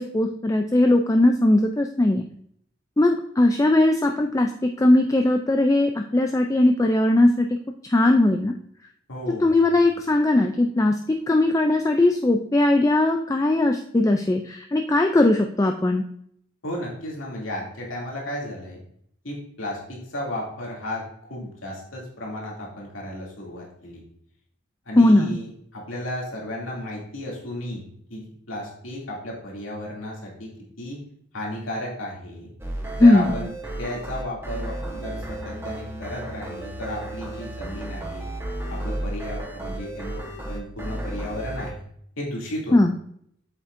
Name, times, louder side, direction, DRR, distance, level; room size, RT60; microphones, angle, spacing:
voice 1, 0.0-2.3 3.0-7.5 7.9-8.5 9.4-16.0 25.0-25.4 33.0-33.3 42.7-42.9, left 2 dB, 15° left, 4 dB, 0.4 m, -19 dB
voice 2, 9.1-9.5 16.6-18.8 19.2-24.0 24.9-30.5 30.8-31.0 31.3-32.5 33.0-33.5 33.8-38.3 38.7-41.8 42.2-42.8, left 1 dB, 90° left, -3 dB, 2.7 m, -34 dB
sound 1, 32.6-41.7, right 1 dB, 10° right, 1.2 m, -33 dB
7.8 x 7.7 x 2.6 m, 0.68 s
head